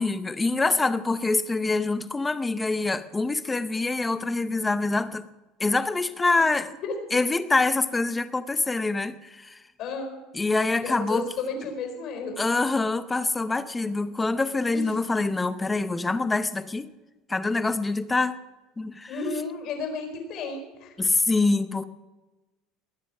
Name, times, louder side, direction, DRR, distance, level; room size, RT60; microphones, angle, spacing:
voice 1, 0.0-5.3 5.6-6.7 7.1-9.6 10.3-11.3 12.4-16.9 17.3-18.4 18.8-19.1 21.0-21.8, left 3 dB, 10° left, 13 dB, 0.7 m, -25 dB
voice 2, 9.8-10.2 10.8-12.4 14.7-14.8 19.1-20.9, left 4 dB, 45° left, 4 dB, 4.4 m, -33 dB
20.0 x 10.0 x 6.0 m, 1.1 s
cardioid pair, 165°, 0 cm